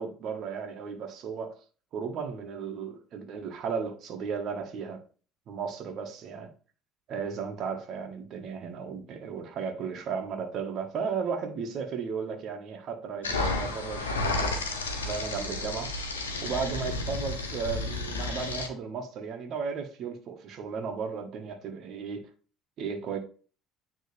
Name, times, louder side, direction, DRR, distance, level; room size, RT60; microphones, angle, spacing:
voice 1, 0.0-1.5 1.9-5.0 5.5-6.5 7.1-14.6 15.0-15.9 16.4-22.3 22.8-23.2, right 6 dB, 55° right, 1.6 m, -35 dB
sound 1, 13.2-18.7, left 2 dB, 85° left, 1.1 m, -32 dB
9.4 x 3.6 x 3.4 m
hypercardioid pair, 60°, 0 cm